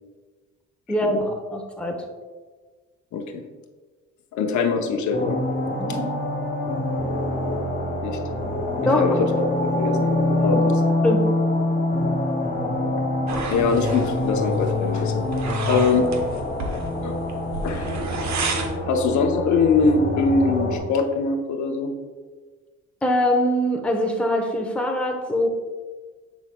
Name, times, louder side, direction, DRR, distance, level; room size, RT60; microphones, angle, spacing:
voice 1, 0.9-1.9 5.8-6.1 8.9-9.2 11.0-11.2 23.0-25.5, left 1 dB, 5° left, 1 dB, 0.8 m, -23 dB
voice 2, 3.1-3.4 4.3-5.4 8.0-8.2 8.8-9.3 9.6-10.1 10.4-10.6 13.5-15.3 15.7-16.1 17.0-17.2 17.6-18.1 18.9-21.9, left 4 dB, 70° left, 4 dB, 0.8 m, -22 dB
sound 1, 5.1-20.8, left 1 dB, 30° left, 1.4 m, -25 dB
sound 2, 13.3-18.8, right 4 dB, 65° right, 0.9 m, -32 dB
7.1 x 6.0 x 2.2 m, 1.4 s
cardioid pair, 90°, 30 cm